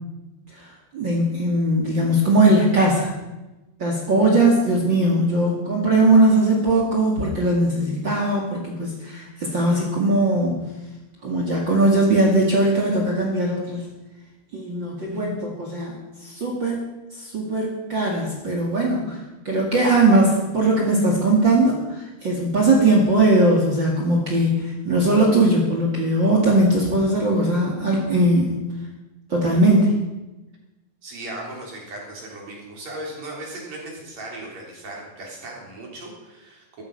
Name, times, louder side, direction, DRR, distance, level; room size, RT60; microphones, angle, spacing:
voice 1, 0.9-3.1 3.8-10.6 11.2-13.8 14.5-16.9 17.2-19.2 19.5-28.5 29.3-29.9, right 2 dB, 40° right, -2 dB, 2.4 m, -19 dB
voice 2, 31.0-36.8, right 1 dB, 55° right, -2 dB, 4.7 m, -37 dB
14.0 x 13.5 x 5.4 m, 1.1 s
omnidirectional pair, 3.9 m